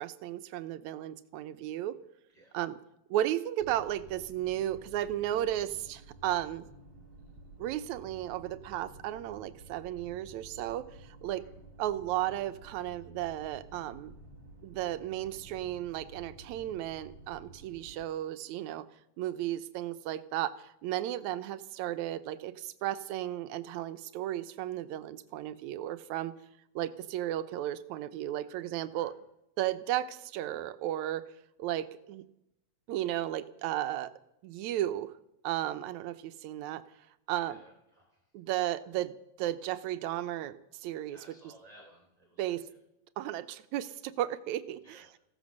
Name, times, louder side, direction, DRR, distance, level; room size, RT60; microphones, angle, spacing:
voice 1, 0.0-2.0 2.5-2.8 3.1-6.7 7.6-11.4 11.8-14.1 14.6-18.9 19.2-26.3 26.8-29.1 29.6-31.3 31.6-32.2 32.9-34.1 34.4-35.1 35.4-36.8 37.3-37.6 38.3-41.2 42.4-42.6 43.2-45.1, right 13 dB, 80° right, 12 dB, 2.1 m, -34 dB
sound 1, 3.6-18.1, right 2 dB, 50° right, 2.4 m, -52 dB
voice 2, 37.3-38.3 41.1-42.8 44.8-45.1, right 1 dB, 15° right, 1 dB, 2.8 m, -58 dB
16.0 x 14.0 x 6.4 m, 0.84 s
omnidirectional pair, 3.3 m